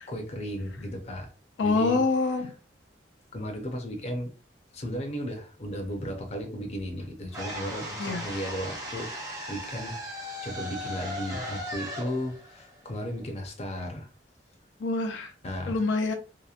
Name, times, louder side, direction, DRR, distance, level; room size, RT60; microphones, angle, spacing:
voice 1, 0.1-1.3 1.6-2.0 3.3-4.3 4.7-9.1 9.5-14.1 15.4-15.8, equal, 35° left, 3 dB, 0.5 m, -35 dB
voice 2, 1.6-2.5 8.0-8.2 14.8-15.3 15.7-16.1, left 3 dB, 85° left, 5 dB, 0.4 m, -25 dB
sound 1, 7.3-13.4, equal, 20° right, 0.6 m, -37 dB
2.8 x 2.0 x 2.4 m, 0.38 s
head